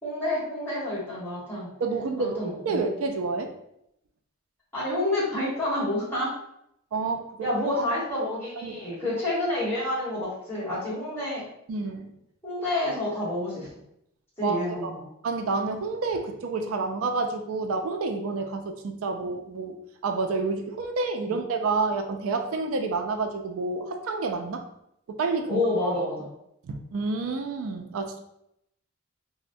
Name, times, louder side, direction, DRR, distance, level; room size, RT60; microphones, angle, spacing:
voice 1, 0.0-1.7 2.2-2.9 4.7-6.3 7.4-11.5 12.4-13.7 14.4-15.1 21.2-21.4 25.5-26.3, left 1 dB, 10° left, -9 dB, 1.3 m, -29 dB
voice 2, 1.8-3.5 6.9-7.5 7.7-7.9 8.6-8.8 11.7-12.1 14.4-14.9 15.2-19.8 20.0-24.6 25.1-25.6 26.6-28.2, right 3 dB, 85° right, 5 dB, 0.4 m, -29 dB
4.1 x 2.1 x 2.6 m, 0.78 s
head